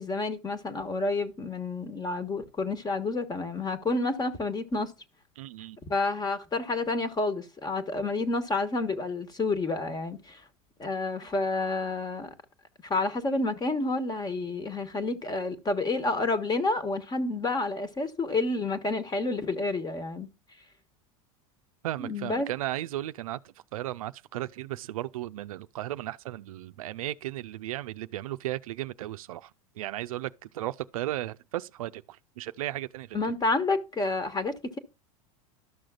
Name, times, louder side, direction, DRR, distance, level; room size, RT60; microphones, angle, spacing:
voice 1, 0.0-4.9 5.9-10.4 10.8-12.3 12.8-20.3 22.0-22.5 33.1-34.8, left 3 dB, 20° left, 1.3 m, -29 dB
voice 2, 5.4-5.8 21.8-29.5 29.8-33.2, right 14 dB, 75° right, 0.4 m, -35 dB
12.5 x 6.2 x 2.3 m
hypercardioid pair, 90°, 18 cm